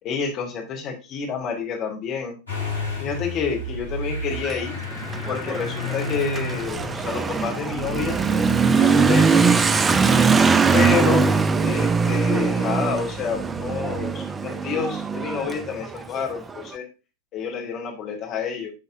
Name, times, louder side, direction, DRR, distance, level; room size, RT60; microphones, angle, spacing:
voice 1, 0.0-2.3 3.0-4.8 5.3-9.6 10.7-11.3 11.6-16.9 17.3-18.7, left 6 dB, 35° left, 0 dB, 2.1 m, -29 dB
Motor vehicle (road) / Engine starting, 2.5-14.1, left 2 dB, 80° left, 2.5 m, -34 dB
Motorcycle / Accelerating revving vroom, 4.3-16.6, right 5 dB, 15° right, 0.4 m, -21 dB
10.5 x 4.0 x 2.6 m, 0.30 s
figure-of-eight pair, 90°, 0 cm